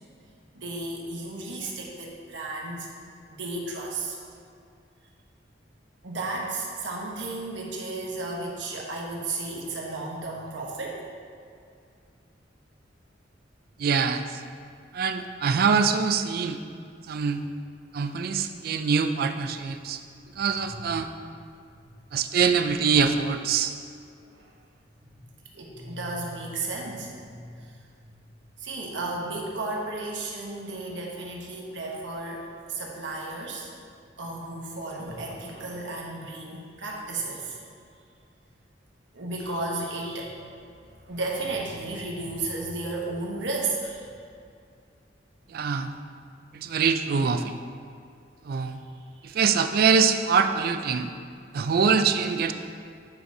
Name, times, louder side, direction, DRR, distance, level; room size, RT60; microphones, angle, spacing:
voice 1, 0.5-2.9 3.4-4.2 6.0-11.1 20.5-20.8 22.3-22.5 24.2-24.5 25.5-28.1 28.6-33.7 34.2-37.6 39.1-40.4 41.1-44.1, right 2 dB, 85° right, -2 dB, 1.1 m, -34 dB
voice 2, 13.8-14.2 14.9-16.6 17.1-17.4 17.9-20.0 20.4-21.1 22.1-23.7 45.5-45.9 46.5-47.5 48.5-48.8 49.2-51.1 51.5-52.5, right 6 dB, 55° right, 8 dB, 0.3 m, -24 dB
8.8 x 4.6 x 2.7 m, 2.3 s
head